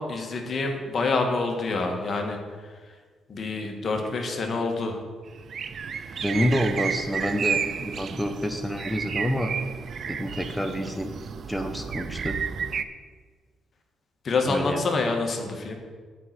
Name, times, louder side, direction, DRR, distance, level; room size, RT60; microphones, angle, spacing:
voice 1, 0.0-2.4 3.3-5.0 14.2-15.7, left 3 dB, 50° left, 3 dB, 1.7 m, -27 dB
sound 1, 5.4-12.8, right 6 dB, 55° right, 0.6 m, -32 dB
voice 2, 6.2-9.5 10.1-11.1 11.5-12.4 14.4-14.8, equal, ahead, 4 dB, 1.2 m, -28 dB
8.4 x 5.7 x 7.8 m, 1.5 s
hypercardioid pair, 50°, 0 cm